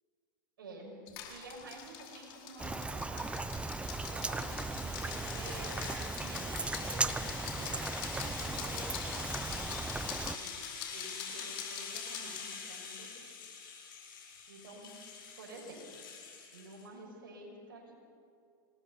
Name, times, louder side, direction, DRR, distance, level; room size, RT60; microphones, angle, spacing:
voice 1, 0.6-3.4 3.6-13.3 14.5-14.9 15.4-16.1 16.5-17.9, right 2 dB, 75° right, -1 dB, 6.3 m, -50 dB
sound 1, 1.1-12.4, left 8 dB, 55° left, 4.4 m, -46 dB
Rain, 2.6-10.4, right 3 dB, 10° right, 0.8 m, -37 dB
Rattle (instrument), 2.9-16.8, left 6 dB, 75° left, 7.4 m, -45 dB
27.0 x 19.5 x 5.7 m, 2.4 s
hypercardioid pair, 100°, 11 cm